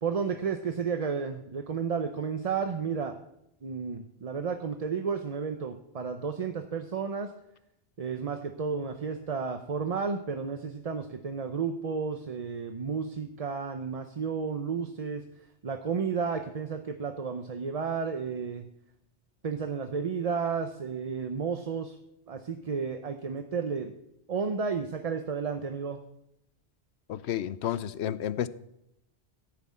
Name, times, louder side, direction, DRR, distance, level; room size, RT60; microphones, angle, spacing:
voice 1, 0.0-3.2 3.6-7.3 8.0-15.2 15.6-18.7 19.4-22.0 22.3-23.9 24.3-26.0, right 5 dB, 40° right, 0.7 m, -32 dB
voice 2, 27.1-28.5, left 10 dB, 80° left, 0.9 m, -31 dB
14.5 x 6.0 x 8.4 m
omnidirectional pair, 1.1 m